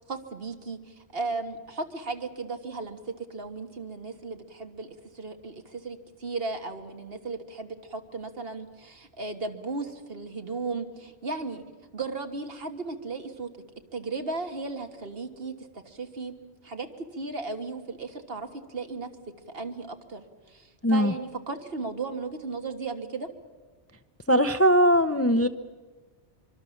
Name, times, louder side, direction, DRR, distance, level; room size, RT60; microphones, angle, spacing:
voice 1, 0.1-11.6 11.9-13.5 13.9-16.3 16.6-19.1 19.5-23.3, right 3 dB, 55° right, 6 dB, 1.8 m, -36 dB
voice 2, 20.8-21.1 24.3-25.5, equal, 15° left, 10 dB, 0.5 m, -20 dB
24.5 x 24.0 x 7.1 m, 1.4 s
omnidirectional pair, 1.2 m